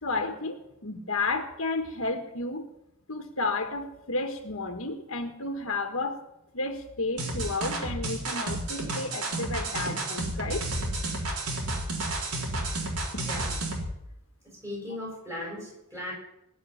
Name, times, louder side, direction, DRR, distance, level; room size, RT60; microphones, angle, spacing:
voice 1, 0.0-2.6 3.1-6.2 6.5-10.6, left 3 dB, 65° left, 6 dB, 1.5 m, -32 dB
sound 1, 7.2-13.9, right 2 dB, 80° right, 4.0 m, -31 dB
voice 2, 14.6-16.1, left 1 dB, 15° right, -3 dB, 6.9 m, -37 dB
19.0 x 6.5 x 10.0 m, 0.84 s
head